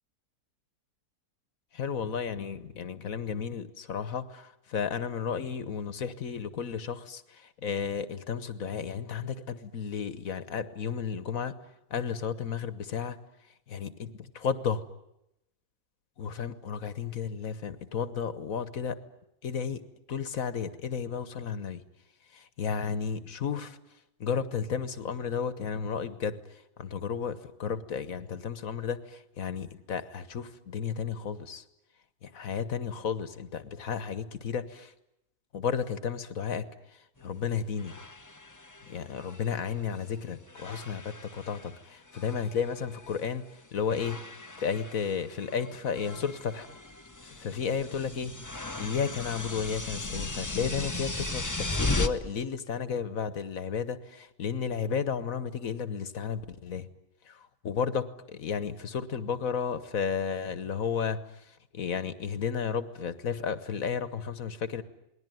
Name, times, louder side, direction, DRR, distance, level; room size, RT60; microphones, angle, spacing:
voice 1, 1.7-11.5 11.9-13.2 13.7-14.8 16.2-19.0 19.4-19.8 20.1-21.8 22.3-23.8 24.2-31.6 32.2-34.9 35.5-38.0 38.8-43.4 43.7-44.2 44.6-46.7 47.2-48.3 48.8-56.9 57.3-64.8, left 6 dB, 60° left, 14 dB, 1.6 m, -33 dB
sound 1, 37.2-37.3 37.8-40.2 40.5-41.8 42.1-43.3 43.9-52.1, left 2 dB, 15° left, 1.0 m, -37 dB
28.0 x 20.0 x 9.2 m, 0.85 s
omnidirectional pair, 1.6 m